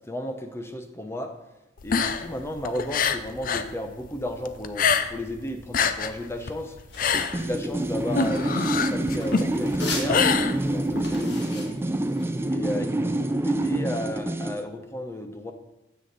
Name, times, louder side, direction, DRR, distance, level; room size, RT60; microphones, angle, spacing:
voice 1, 0.0-1.3 1.8-6.8 7.3-11.8 12.5-15.5, equal, 15° left, 6 dB, 0.8 m, -34 dB
sound 1, 1.8-3.7 4.0-5.3 5.6-11.0, left 6 dB, 50° left, 0.5 m, -25 dB
sound 2, 6.9-12.5, left 2 dB, 70° left, 1.7 m, -37 dB
sound 3, 7.1-14.6, right 1 dB, 15° right, 0.5 m, -27 dB
9.6 x 7.8 x 4.0 m, 0.99 s
head